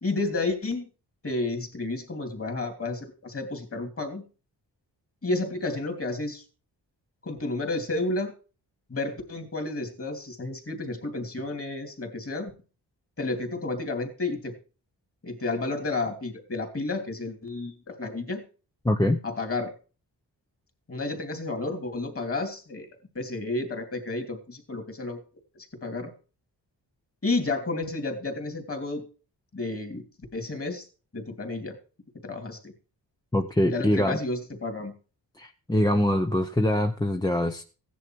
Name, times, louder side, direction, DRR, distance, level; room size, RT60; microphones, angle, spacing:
voice 1, 0.0-0.9 1.2-4.2 5.2-6.4 7.2-8.3 8.9-12.5 13.2-14.5 15.2-18.4 19.2-19.7 20.9-22.9 23.1-25.2 25.8-26.1 27.2-29.0 29.5-30.0 30.3-30.8 31.1-31.8 32.2-32.7 33.7-34.9, left 2 dB, 30° left, 6 dB, 3.0 m, -31 dB
voice 2, 18.8-19.2 33.3-34.2 35.4-37.6, left 1 dB, 10° left, 5 dB, 0.8 m, -24 dB
16.0 x 10.5 x 4.6 m, 0.36 s
wide cardioid pair, 160°, 43 cm